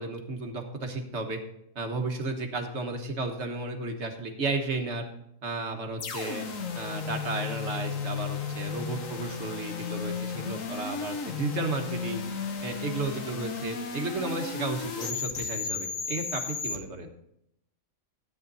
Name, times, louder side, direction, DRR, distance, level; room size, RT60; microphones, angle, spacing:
voice 1, 0.0-1.4 1.7-5.1 5.4-6.5 6.7-12.2 12.6-17.1, right 2 dB, 55° right, 4 dB, 1.6 m, -33 dB
sound 1, 6.0-16.8, left 5 dB, 75° left, 1.5 m, -34 dB
13.0 x 9.4 x 4.1 m, 0.77 s
omnidirectional pair, 1.4 m